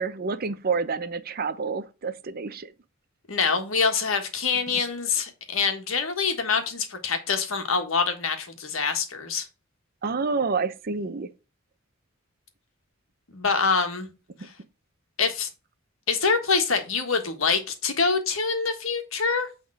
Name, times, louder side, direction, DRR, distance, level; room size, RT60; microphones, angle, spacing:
voice 1, 0.0-2.7 10.0-11.3, right 4 dB, 45° right, 0.6 m, -28 dB
voice 2, 3.3-9.5 13.3-14.1 14.4-14.5 15.2-15.5 16.1-19.5, left 5 dB, 80° left, 1.5 m, -25 dB
8.6 x 3.6 x 4.6 m
head